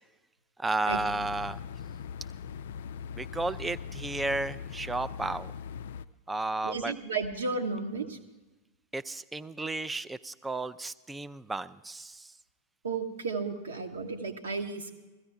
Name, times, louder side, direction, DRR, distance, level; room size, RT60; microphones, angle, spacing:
voice 1, 0.6-1.6 3.1-5.5 6.3-6.9 8.9-12.3, right 2 dB, 10° right, 16 dB, 0.4 m, -33 dB
sound 1, 0.9-6.1, left 7 dB, 60° left, 0.3 m, -40 dB
voice 2, 6.6-8.2 12.8-14.9, right 4 dB, 70° right, 5 dB, 1.2 m, -33 dB
16.5 x 14.5 x 3.5 m, 1.2 s
figure-of-eight pair, 90°, 0 cm